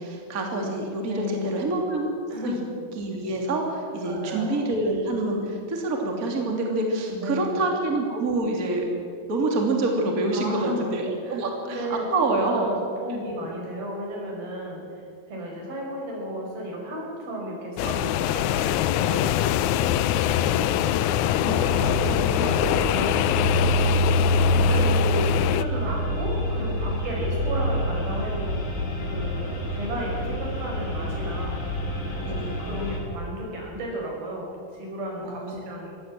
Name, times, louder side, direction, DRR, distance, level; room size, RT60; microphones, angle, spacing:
voice 1, 0.0-2.1 2.4-2.6 3.0-8.9 9.3-12.8 13.1-13.2 20.5-20.8 32.3-32.6 35.2-35.7, right 2 dB, 25° right, 1 dB, 2.8 m, -27 dB
voice 2, 1.0-1.7 2.3-2.7 4.0-4.6 7.1-7.8 10.3-10.9 11.2-20.9 21.4-28.8 29.1-31.7 32.1-35.9, equal, 75° right, -1 dB, 7.2 m, -34 dB
sound 1, 17.8-25.6, left 12 dB, 90° left, 1.7 m, -24 dB
sound 2, 21.5-33.0, equal, 65° left, 6.1 m, -26 dB
22.5 x 17.0 x 7.6 m, 2.3 s
omnidirectional pair, 4.2 m